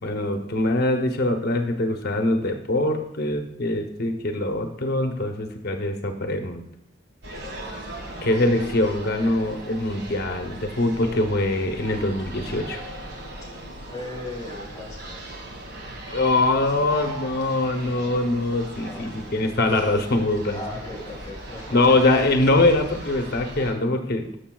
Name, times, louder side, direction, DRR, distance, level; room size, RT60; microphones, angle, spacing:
voice 1, 0.0-6.6 8.2-12.8 16.1-20.6 21.7-24.3, left 2 dB, 55° left, 5 dB, 0.8 m, -23 dB
sound 1, 7.2-23.7, right 1 dB, 60° right, 1.6 m, -38 dB
voice 2, 13.9-15.2 18.8-19.1 20.5-21.8, left 2 dB, 20° left, -3 dB, 3.6 m, -37 dB
13.5 x 6.6 x 2.3 m, 0.78 s
head